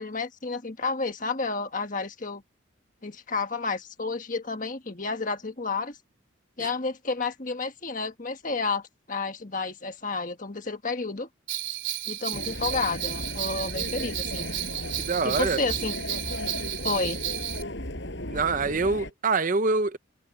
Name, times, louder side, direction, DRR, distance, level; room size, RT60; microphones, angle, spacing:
voice 1, 0.0-2.4 3.0-6.0 6.6-11.3 12.1-14.6 15.2-16.0 16.8-17.2, left 4 dB, 40° left, 1.5 m, -31 dB
Bell, 11.5-17.6, right 13 dB, 55° right, 3.5 m, -33 dB
sound 1, 12.3-19.1, left 1 dB, 55° left, 5.7 m, -36 dB
voice 2, 15.0-15.6 18.3-20.0, right 4 dB, 40° right, 0.6 m, -25 dB
head